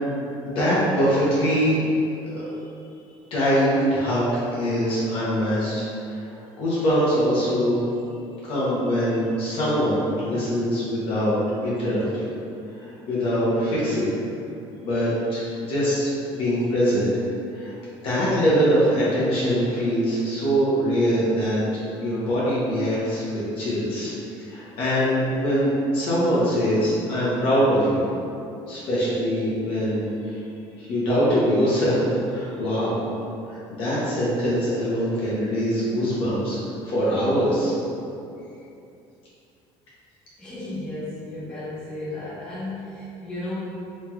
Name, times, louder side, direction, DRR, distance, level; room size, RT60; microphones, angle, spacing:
voice 1, 0.4-2.0 2.2-2.4 3.3-6.2 6.6-7.9 8.4-12.3 12.7-14.1 14.8-17.1 17.5-17.7 18.0-24.1 24.5-28.1 28.7-30.4 30.8-33.0 33.5-36.6 36.9-37.7, equal, 55° left, -9 dB, 0.8 m, -23 dB
voice 2, 40.4-43.5, left 2 dB, 5° left, -13 dB, 1.1 m, -34 dB
3.0 x 2.8 x 2.3 m, 2.7 s
cardioid pair, 150°, 11 cm